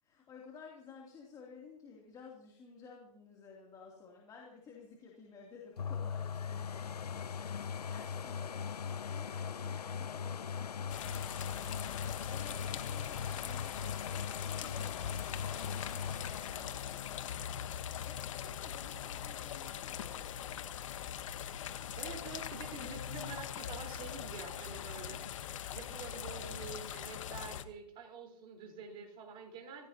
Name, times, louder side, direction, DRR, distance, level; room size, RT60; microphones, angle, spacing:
voice 1, 0.0-21.1, left 5 dB, 20° left, -2 dB, 3.0 m, -55 dB
sound 1, 5.8-19.4 20.0-20.1, left 7 dB, 85° left, 0.8 m, -40 dB
sound 2, 10.9-27.6, left 9 dB, 55° left, 1.2 m, -42 dB
voice 2, 22.0-25.2 25.7-29.9, right 4 dB, 25° right, 1 dB, 4.3 m, -47 dB
27.0 x 16.5 x 2.9 m, 0.70 s
hypercardioid pair, 135°, 20 cm